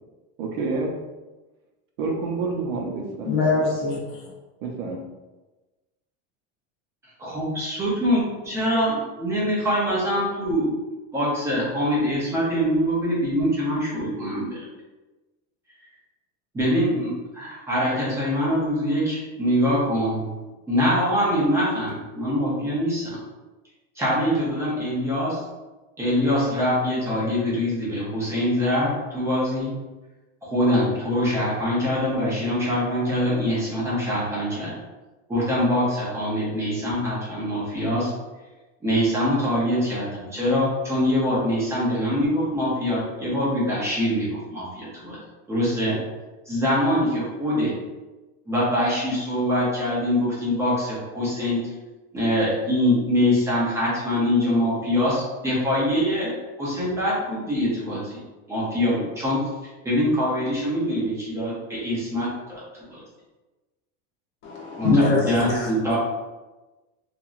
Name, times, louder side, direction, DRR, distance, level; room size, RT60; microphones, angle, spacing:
voice 1, 0.4-0.9 2.0-3.6 4.6-5.0, right 3 dB, 65° right, 1 dB, 0.6 m, -28 dB
voice 2, 3.2-4.3 64.4-65.7, left 3 dB, 50° left, -2 dB, 0.7 m, -23 dB
voice 3, 7.2-10.8 11.1-14.7 16.5-20.3 20.7-23.2 24.0-25.4 26.0-29.8 30.4-34.8 35.3-38.1 38.8-45.2 45.5-46.0 46.5-47.7 48.5-51.7 52.1-56.3 56.6-58.2 58.5-59.5 59.8-63.0 64.8-66.0, equal, 10° right, -7 dB, 0.5 m, -24 dB
3.0 x 2.5 x 2.4 m, 1.2 s
cardioid pair, 175°, 32 cm